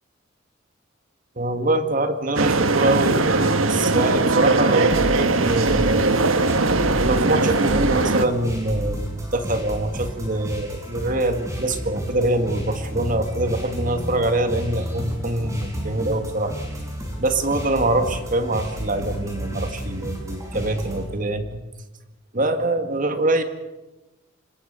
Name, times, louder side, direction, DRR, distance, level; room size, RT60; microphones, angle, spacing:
voice 1, 1.4-6.1 7.0-16.5 17.2-21.6 22.3-23.4, right 2 dB, 40° right, 8 dB, 1.9 m, -24 dB
sound 1, 2.4-8.2, right 3 dB, 90° right, 1.5 m, -20 dB
sound 2, 4.9-21.0, equal, 15° right, 5.8 m, -31 dB
26.0 x 21.0 x 6.8 m, 1.1 s
head